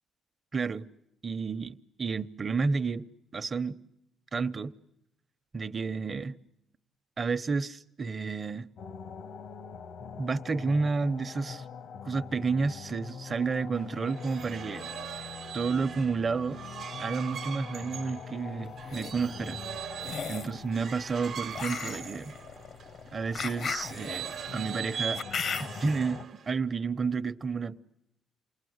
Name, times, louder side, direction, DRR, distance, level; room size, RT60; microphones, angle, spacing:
voice 1, 0.5-0.9 1.2-3.1 3.3-3.8 4.3-4.7 5.5-6.4 7.2-8.7 10.2-11.6 12.0-14.9 15.5-16.6 17.0-19.6 20.2-22.3 23.1-25.2 25.6-26.2 26.5-27.8, right 4 dB, 35° right, 0.9 m, -31 dB
sound 1, 8.8-26.3, left 6 dB, 80° left, 1.3 m, -44 dB
sound 2, 13.8-22.9 23.6-26.6, right 8 dB, 65° right, 1.1 m, -41 dB
sound 3, 18.6-19.1 20.0-20.6 21.5-25.9, left 6 dB, 60° left, 0.9 m, -36 dB
29.0 x 21.0 x 8.0 m
cardioid pair, 90°, 0 cm